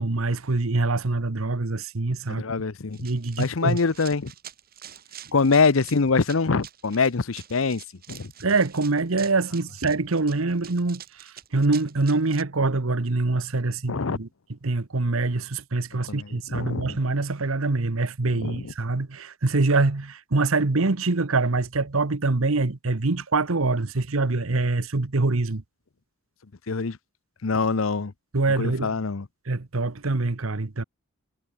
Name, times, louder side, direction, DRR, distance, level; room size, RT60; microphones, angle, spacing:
voice 1, 0.0-2.4 3.0-3.8 8.4-14.3 14.6-25.6 28.3-28.9 29.5-30.8, right 3 dB, 80° right, 1.1 m, -24 dB
voice 2, 2.3-3.0 3.4-4.3 5.3-7.8 8.1-8.3 13.9-14.2 16.1-17.0 18.3-18.7 26.7-27.0 27.4-28.1 28.6-29.3, left 4 dB, 75° left, 0.8 m, -24 dB
Run, 2.9-12.4, right 10 dB, 45° right, 4.0 m, -46 dB
head